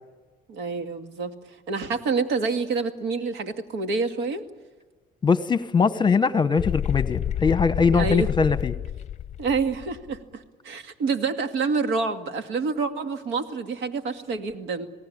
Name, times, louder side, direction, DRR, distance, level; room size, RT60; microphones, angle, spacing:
voice 1, 0.5-1.3 1.7-4.5 7.9-8.3 9.4-14.9, right 4 dB, 85° right, 8 dB, 2.2 m, -27 dB
voice 2, 5.2-8.7, left 5 dB, 25° left, 13 dB, 1.1 m, -21 dB
sound 1, 6.6-10.2, left 10 dB, 45° left, 0.7 m, -29 dB
27.5 x 18.5 x 8.7 m, 1.3 s
cardioid pair, 110°, 17 cm